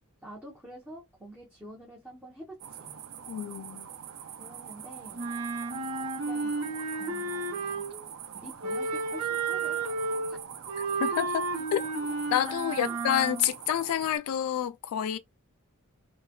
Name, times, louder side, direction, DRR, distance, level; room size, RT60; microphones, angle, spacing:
voice 1, 0.2-3.0 4.4-5.2 6.2-6.6 7.0-7.8 8.3-9.8 10.3-10.4 11.8-11.9 12.8-13.0, right 1 dB, 5° right, 0.7 m, -47 dB
sound 1, 2.6-14.2, right 8 dB, 65° right, 0.4 m, -44 dB
voice 2, 3.3-3.9 11.0-11.8 12.3-15.2, left 10 dB, 85° left, 0.3 m, -28 dB
Wind instrument woodwind instrument, 5.1-8.1 8.6-13.5, right 3 dB, 85° right, 0.8 m, -32 dB
3.1 x 2.1 x 2.2 m
head